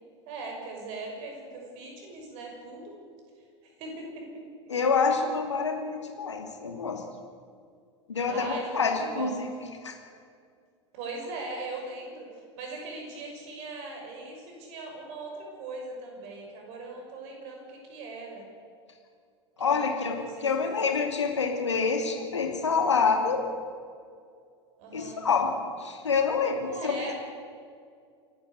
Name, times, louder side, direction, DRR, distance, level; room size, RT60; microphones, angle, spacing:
voice 1, 0.3-2.9 3.6-4.2 8.2-9.4 10.9-12.3 12.5-18.4 19.6-19.8 20.1-20.5 20.7-20.9 24.8-25.2 26.6-27.2, right 3 dB, 45° right, 1 dB, 6.3 m, -39 dB
voice 2, 4.7-7.0 8.1-9.4 9.8-10.0 19.6-23.4 24.9-25.5 25.8-26.9, left 5 dB, 75° left, 3 dB, 2.7 m, -27 dB
27.5 x 11.5 x 8.1 m, 2.2 s
figure-of-eight pair, 85°, 15 cm